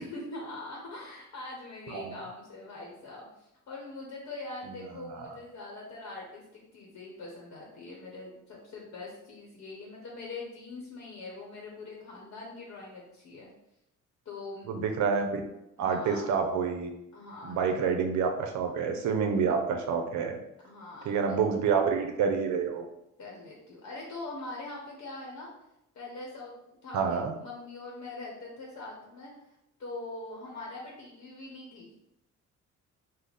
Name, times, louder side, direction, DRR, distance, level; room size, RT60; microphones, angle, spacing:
voice 1, 0.0-13.5 14.2-14.8 15.8-16.3 17.1-17.9 20.6-21.5 23.2-25.5 25.9-29.3 29.8-31.9, left 2 dB, 60° left, -2 dB, 0.9 m, -43 dB
voice 2, 14.7-15.4 15.8-16.9 17.4-20.4 21.1-22.9 26.9-27.3, right 6 dB, 70° right, 4 dB, 0.5 m, -28 dB
3.3 x 2.1 x 4.0 m, 0.86 s
cardioid pair, 90°, 30 cm